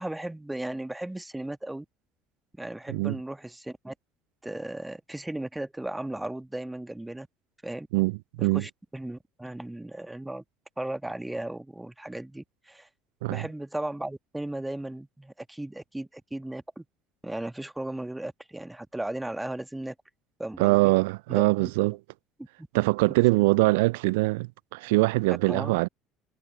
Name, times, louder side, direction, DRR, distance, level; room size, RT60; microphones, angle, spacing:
voice 1, 0.0-1.8 2.5-3.9 4.4-7.3 7.6-7.9 8.4-10.4 10.8-12.9 13.3-16.8 17.2-19.9 20.4-20.9 21.3-21.7 22.6-22.7 25.5-25.8, right 1 dB, 10° right, 1.7 m, -36 dB
voice 2, 7.9-8.6 13.2-13.5 20.6-22.0 22.7-25.9, right 24 dB, 70° right, 0.3 m, -23 dB
figure-of-eight pair, 60°, 0 cm